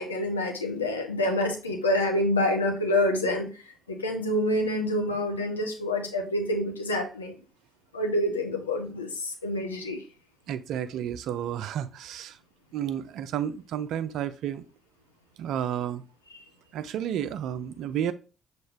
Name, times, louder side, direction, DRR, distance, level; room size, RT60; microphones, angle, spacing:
voice 1, 0.0-3.5 3.9-7.3 7.9-10.0, left 1 dB, 85° left, 2 dB, 0.5 m, -27 dB
voice 2, 10.5-12.4 12.7-14.6 15.4-16.0 16.7-18.1, right 10 dB, 65° right, 13 dB, 0.3 m, -31 dB
6.1 x 2.4 x 3.3 m, 0.34 s
figure-of-eight pair, 40°, 0 cm